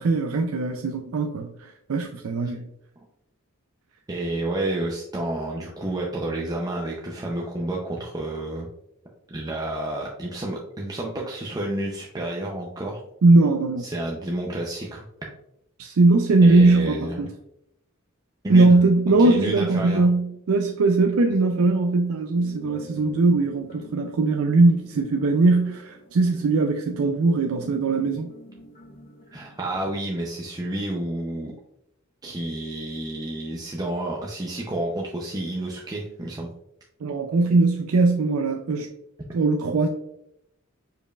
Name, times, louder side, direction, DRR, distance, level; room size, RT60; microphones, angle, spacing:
voice 1, 0.0-2.7 13.2-13.9 15.8-17.3 18.5-28.3 37.0-38.9 39.3-39.9, right 3 dB, 80° right, 4 dB, 0.4 m, -20 dB
voice 2, 4.1-8.7 9.3-13.0 13.8-15.1 16.4-17.3 18.4-18.8 19.1-20.1 29.3-31.5 32.2-36.5, right 1 dB, 20° right, -2 dB, 0.5 m, -30 dB
sound 1, 22.4-29.9, equal, 45° left, 1.1 m, -47 dB
5.0 x 4.4 x 2.3 m, 0.80 s
head